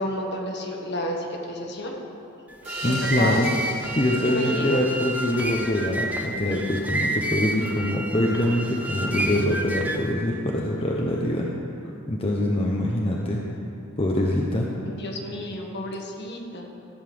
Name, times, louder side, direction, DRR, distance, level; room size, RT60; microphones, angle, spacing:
voice 1, 0.0-2.0 2.8-3.4 4.2-4.8 14.9-16.7, left 1 dB, 55° left, 1 dB, 1.6 m, -31 dB
sound 1, 2.5-10.1, right 1 dB, 5° right, 0.9 m, -30 dB
sound 2, 2.6-6.0, right 3 dB, 50° right, 3.2 m, -41 dB
voice 2, 2.8-3.5 3.9-11.5 12.1-13.4 14.0-14.7, left 1 dB, 25° left, -2 dB, 0.9 m, -24 dB
14.5 x 5.5 x 7.8 m, 2.7 s
head